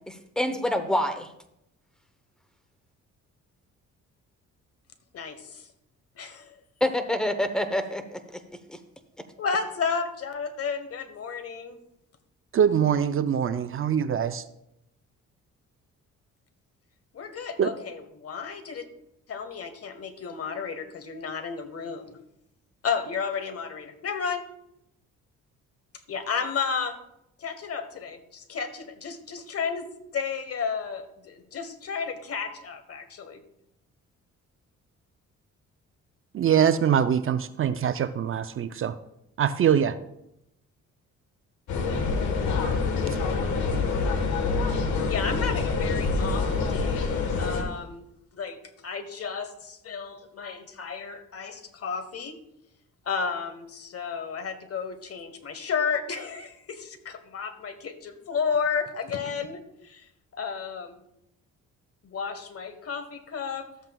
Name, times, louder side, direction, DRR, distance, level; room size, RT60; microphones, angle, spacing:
voice 1, 0.1-1.3 6.8-8.4 8.7-8.8, left 1 dB, ahead, 8 dB, 0.9 m, -27 dB
voice 2, 5.1-5.7 6.2-6.6 9.4-11.8 17.1-18.8 19.3-22.2 22.8-24.4 26.1-27.0 27.4-29.9 30.1-33.4 45.1-48.0 48.3-48.6 48.8-52.4 53.0-61.0 62.0-63.7, left 6 dB, 50° left, 9 dB, 1.2 m, -32 dB
voice 3, 12.5-14.4 17.6-17.7 36.3-39.0 39.4-40.0, right 8 dB, 45° right, 11 dB, 0.5 m, -23 dB
sound 1, 41.7-47.6, left 4 dB, 75° left, 1.5 m, -26 dB
13.5 x 7.7 x 2.3 m, 0.81 s
cardioid pair, 90°, 30 cm